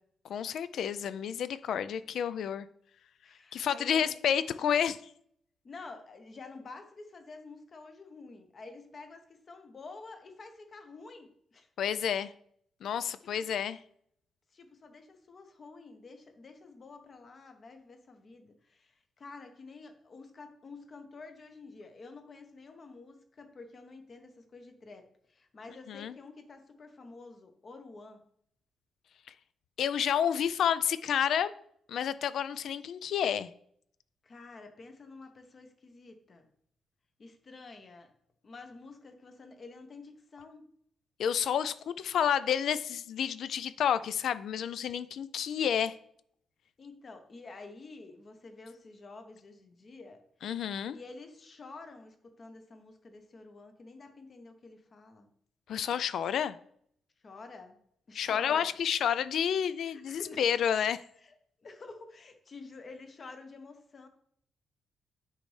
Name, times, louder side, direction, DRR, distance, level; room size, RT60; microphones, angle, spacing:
voice 1, 0.3-2.7 3.5-5.0 11.8-12.3 12.8-13.8 25.9-26.1 29.8-31.5 31.9-33.5 41.2-46.0 50.4-51.0 55.7-56.6 58.1-61.0, left 8 dB, 65° left, 0.3 m, -30 dB
voice 2, 3.2-4.1 5.6-11.7 13.0-13.5 14.5-28.2 34.2-36.5 37.2-38.1 38.4-40.7 46.8-50.2 50.9-55.3 57.2-57.8 58.1-58.7 59.8-60.4 61.2-61.3 61.6-64.1, left 3 dB, 35° left, 0.8 m, -49 dB
9.8 x 4.0 x 3.2 m
wide cardioid pair, 165°, 0 cm